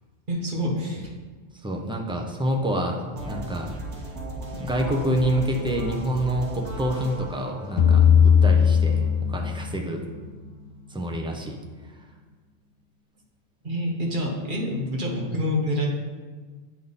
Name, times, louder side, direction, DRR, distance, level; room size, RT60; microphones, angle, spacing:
voice 1, 0.3-1.1 13.6-15.9, equal, 45° right, -2 dB, 1.3 m, -27 dB
voice 2, 1.6-3.7 4.5-10.0 10.9-11.6, right 1 dB, 5° right, 1 dB, 0.4 m, -27 dB
sound 1, 3.2-9.1, right 1 dB, 70° right, 1.4 m, -37 dB
sound 2, 7.8-10.2, left 7 dB, 75° left, 0.8 m, -18 dB
9.1 x 3.6 x 4.1 m, 1.4 s
omnidirectional pair, 1.2 m